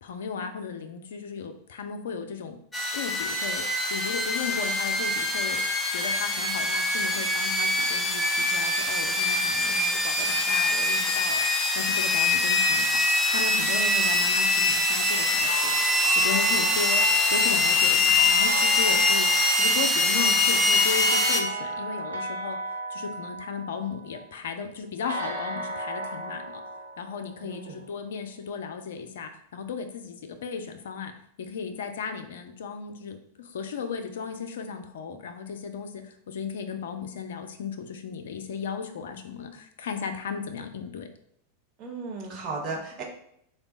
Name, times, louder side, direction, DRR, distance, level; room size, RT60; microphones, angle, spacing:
voice 1, 0.0-2.6 2.9-5.6 5.9-15.8 16.1-22.6 22.9-26.6 27.0-31.1 31.4-41.1, left 6 dB, 60° left, 7 dB, 0.4 m, -35 dB
sound 1, 2.7-21.4, left 2 dB, 10° left, 0.5 m, -24 dB
sound 2, 15.1-24.3 25.1-27.9, right 2 dB, 70° right, 0.5 m, -35 dB
voice 2, 27.4-27.9 41.8-43.0, right 3 dB, 40° right, 0 dB, 0.8 m, -35 dB
3.3 x 2.2 x 3.9 m, 0.72 s
figure-of-eight pair, 90°, 0 cm